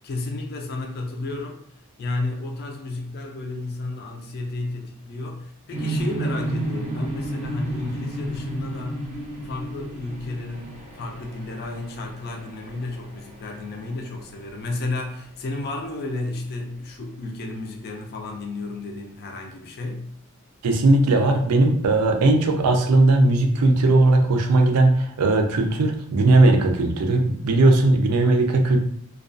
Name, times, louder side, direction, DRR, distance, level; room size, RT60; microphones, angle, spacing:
voice 1, 0.0-1.6 2.0-9.1 9.4-20.1, left 2 dB, 45° left, 2 dB, 0.3 m, -32 dB
sound 1, 5.7-14.6, right 2 dB, 30° right, 0.6 m, -32 dB
voice 2, 20.6-28.8, right 2 dB, 85° right, 4 dB, 0.4 m, -18 dB
2.3 x 2.2 x 2.4 m, 0.64 s
head